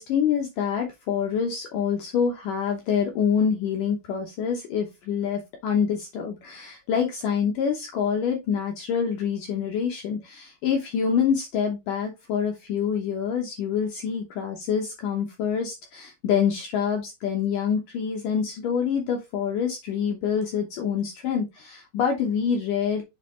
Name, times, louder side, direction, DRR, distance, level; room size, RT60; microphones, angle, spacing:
voice 1, 0.0-23.0, left 7 dB, 85° left, 3 dB, 1.8 m, -26 dB
7.4 x 3.7 x 3.6 m, 0.21 s
omnidirectional pair, 5.1 m